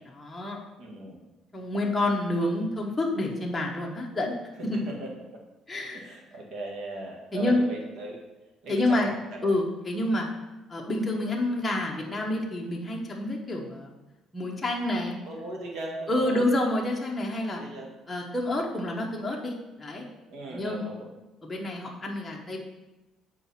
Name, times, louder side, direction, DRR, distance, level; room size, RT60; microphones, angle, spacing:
voice 1, 0.1-0.6 1.5-4.3 4.6-4.9 5.7-6.0 7.3-7.7 8.7-9.1 9.4-10.3 10.7-13.9 14.3-15.2 16.1-17.6 18.1-20.1 20.5-20.8 21.4-22.6, left 1 dB, 10° left, -2 dB, 1.0 m, -28 dB
voice 2, 0.8-1.2 4.7-5.4 5.9-8.2 8.6-9.5 15.2-16.5 17.5-17.9 20.3-21.1, right 2 dB, 65° right, -1 dB, 1.7 m, -38 dB
7.7 x 4.8 x 4.2 m, 1.1 s
cardioid pair, 145°, 0 cm